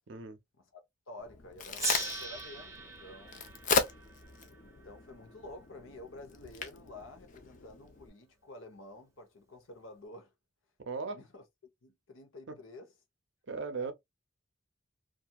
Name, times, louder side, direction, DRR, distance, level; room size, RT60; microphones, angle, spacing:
voice 1, 0.6-3.6 4.6-10.3 11.0-11.4 11.8-12.9 13.8-13.9, left 2 dB, 75° left, 0.8 m, -50 dB
Crack, 1.2-8.1, left 4 dB, 40° left, 0.4 m, -37 dB
Gong, 1.8-4.9, right 2 dB, 15° right, 0.7 m, -39 dB
voice 2, 10.8-11.2 12.5-12.6 13.5-13.9, right 4 dB, 60° right, 0.6 m, -37 dB
2.8 x 2.4 x 2.2 m
head